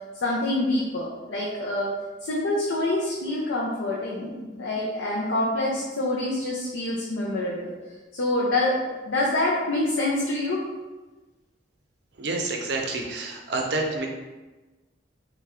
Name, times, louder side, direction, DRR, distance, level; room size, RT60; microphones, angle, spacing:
voice 1, 0.2-1.9 2.2-7.7 8.1-10.7, left 2 dB, 80° left, -4 dB, 0.6 m, -26 dB
voice 2, 12.2-14.1, right 2 dB, 60° right, 1 dB, 0.6 m, -28 dB
3.3 x 3.2 x 3.7 m, 1.2 s
head